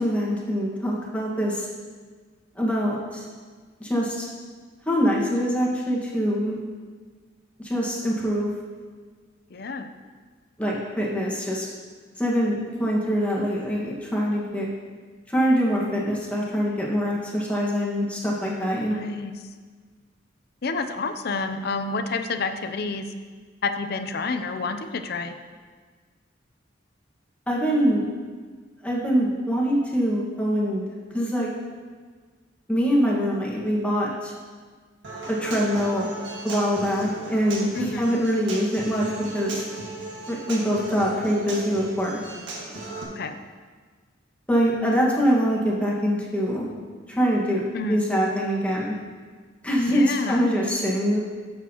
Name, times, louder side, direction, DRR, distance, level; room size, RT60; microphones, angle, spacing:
voice 1, 0.0-1.7 2.6-3.0 3.8-4.3 4.9-6.6 7.6-8.5 10.6-11.7 12.2-14.7 15.3-18.9 27.5-28.0 28.8-30.8 31.1-31.5 32.7-34.3 35.3-36.1 36.4-39.6 40.3-42.2 44.5-46.7 47.2-47.6 47.9-48.9 49.6-51.2, equal, 5° left, -4 dB, 1.6 m, -24 dB
voice 2, 9.5-9.9 18.9-19.3 20.6-23.1 23.6-25.3 37.7-38.0 43.2-43.4 47.7-48.0 49.9-50.4, left 4 dB, 55° left, 8 dB, 0.6 m, -29 dB
Human voice / Acoustic guitar, 35.0-43.0, right 2 dB, 75° right, 1.8 m, -36 dB
12.5 x 7.3 x 2.9 m, 1.5 s
head